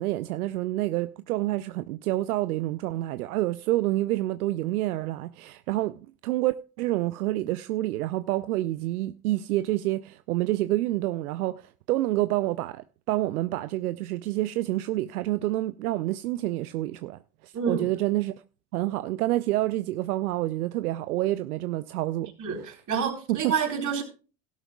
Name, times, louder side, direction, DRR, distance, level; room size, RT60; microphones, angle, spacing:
voice 1, 0.0-18.3 18.7-22.3 23.3-23.5, right 16 dB, 80° right, 0.6 m, -28 dB
voice 2, 17.5-17.9 22.4-24.0, right 6 dB, 40° right, 4.1 m, -28 dB
16.5 x 12.0 x 2.3 m
hypercardioid pair, 70°, 44 cm